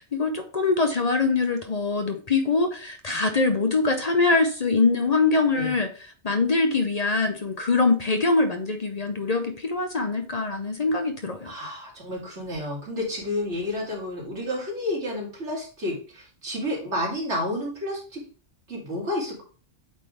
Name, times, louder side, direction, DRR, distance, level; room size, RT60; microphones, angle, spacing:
voice 1, 0.0-5.9 6.2-11.5, left 3 dB, 40° left, 5 dB, 0.7 m, -23 dB
voice 2, 11.4-18.2 18.7-19.4, left 1 dB, 85° right, -3 dB, 2.7 m, -30 dB
8.4 x 3.7 x 3.2 m, 0.38 s
omnidirectional pair, 1.2 m